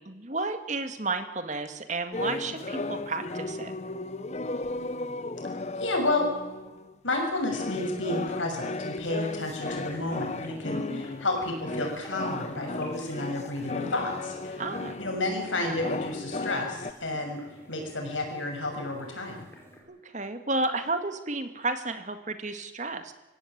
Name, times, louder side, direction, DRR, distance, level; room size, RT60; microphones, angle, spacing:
voice 1, 0.0-3.7 10.7-11.1 14.6-15.0 19.9-23.1, right 3 dB, 40° right, 8 dB, 2.2 m, -32 dB
sound 1, 2.1-6.9 7.5-16.9, left 2 dB, 35° left, 0.8 m, -35 dB
voice 2, 5.8-6.3 7.0-14.6 15.0-17.4 17.7-19.4, left 2 dB, 80° left, 3 dB, 6.7 m, -31 dB
sound 2, 9.2-19.8, equal, 10° left, 5.7 m, -49 dB
24.5 x 16.5 x 8.9 m, 1.1 s
head